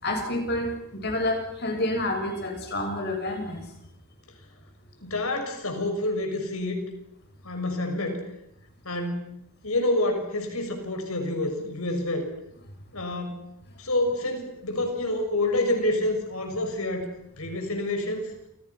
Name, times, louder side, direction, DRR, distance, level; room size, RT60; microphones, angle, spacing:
voice 1, 0.0-3.6, left 1 dB, 50° left, 4 dB, 6.9 m, -28 dB
voice 2, 5.0-6.8 7.4-8.3 8.8-9.3 9.6-12.3 12.9-13.5 13.8-17.1 17.4-18.3, left 1 dB, 80° left, 5 dB, 6.5 m, -28 dB
29.0 x 27.5 x 6.0 m, 0.77 s
head